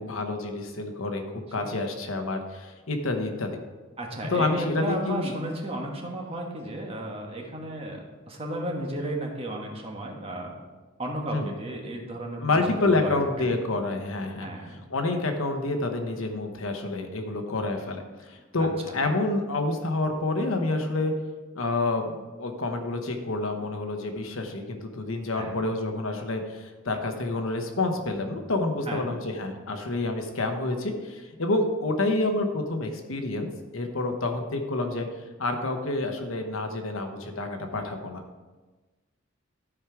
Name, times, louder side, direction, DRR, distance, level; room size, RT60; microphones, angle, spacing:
voice 1, 0.0-3.6 4.3-5.3 11.3-11.5 12.4-21.1 21.5-35.1 35.4-38.2, left 2 dB, 75° left, 5 dB, 1.1 m, -28 dB
voice 2, 4.0-10.6 11.0-13.2 14.4-14.8 18.6-18.9 25.3-25.5 28.9-29.1, right 1 dB, 30° right, 0 dB, 1.4 m, -34 dB
12.5 x 4.9 x 4.7 m, 1.2 s
head